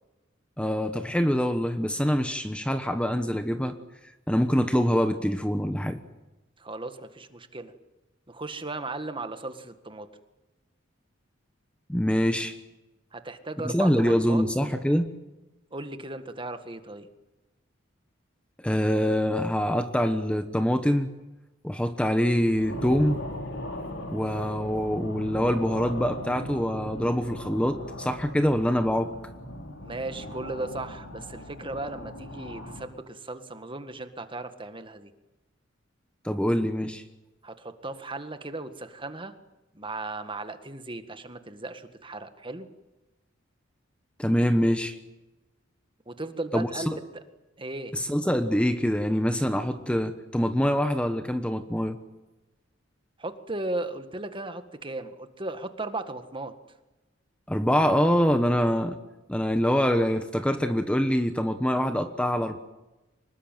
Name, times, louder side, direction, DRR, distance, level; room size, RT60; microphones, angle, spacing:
voice 1, 0.6-3.8 4.3-6.0 11.9-12.5 13.6-15.1 18.6-21.1 21.6-23.2 24.1-29.1 36.2-37.0 44.2-45.0 46.5-47.0 47.9-52.0 57.5-59.0 59.3-62.6, equal, 5° left, 8 dB, 1.1 m, -25 dB
voice 2, 6.6-7.7 8.3-10.1 13.1-14.4 15.7-17.1 29.8-35.1 37.4-39.3 39.7-42.7 46.1-46.9 47.6-47.9 53.2-56.5, right 2 dB, 25° right, 9 dB, 1.8 m, -36 dB
sound 1, 22.5-32.8, left 1 dB, 70° left, 4.8 m, -39 dB
25.0 x 21.0 x 9.2 m, 1.1 s
head